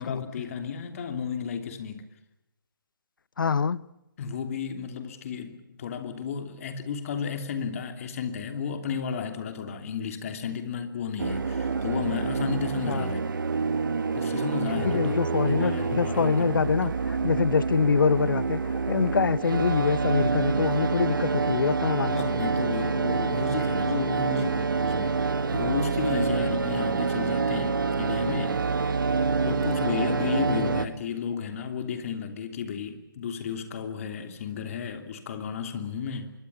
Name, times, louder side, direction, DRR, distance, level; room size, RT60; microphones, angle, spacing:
voice 1, 0.0-2.1 4.2-13.3 14.1-16.8 22.1-25.3 25.5-28.7 29.4-36.3, left 6 dB, 40° left, 3.0 m, -33 dB
voice 2, 3.4-3.8 12.9-13.1 14.8-18.6 18.9-22.3 30.5-30.7, left 5 dB, 65° left, 0.9 m, -25 dB
sound 1, 11.2-30.9, right 5 dB, 60° right, 1.7 m, -27 dB
25.0 x 23.5 x 7.1 m
figure-of-eight pair, 150°, 12 cm